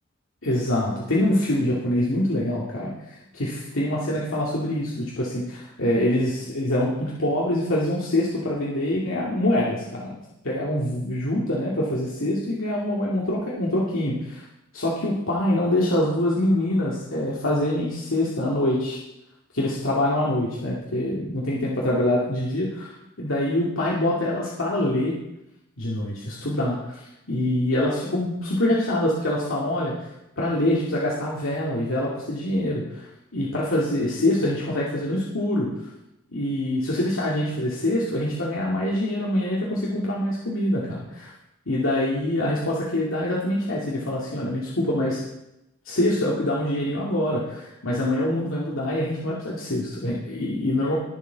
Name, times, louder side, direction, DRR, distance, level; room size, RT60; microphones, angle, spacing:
voice 1, 0.4-10.2 10.4-14.4 14.7-19.0 19.5-22.9 23.2-25.1 25.8-30.1 30.4-35.7 36.3-41.3 41.7-45.2 45.8-50.9, left 1 dB, 90° left, -5 dB, 2.3 m, -25 dB
21.0 x 7.1 x 4.0 m, 0.89 s
head